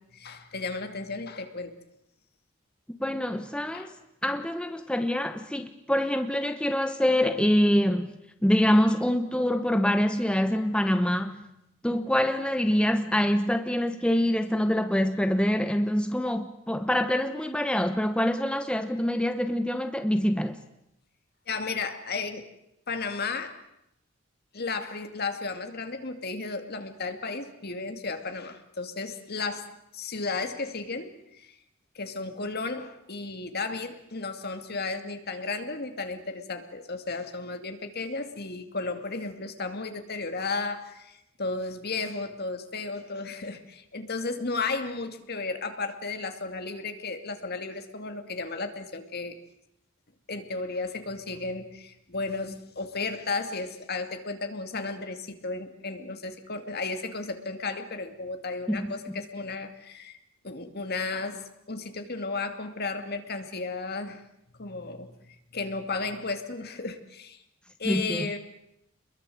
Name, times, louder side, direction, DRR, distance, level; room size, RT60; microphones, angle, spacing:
voice 1, 0.1-1.8 3.7-3.9 21.5-22.5 22.9-23.6 24.5-31.6 31.9-49.4 50.3-60.2 60.4-64.2 64.5-67.4 67.8-68.4, left 3 dB, 50° left, 2.5 m, -34 dB
voice 2, 3.0-3.9 4.2-11.4 11.8-20.6 58.7-58.9 67.8-68.3, equal, 5° left, 1.0 m, -25 dB
27.5 x 22.0 x 7.9 m
head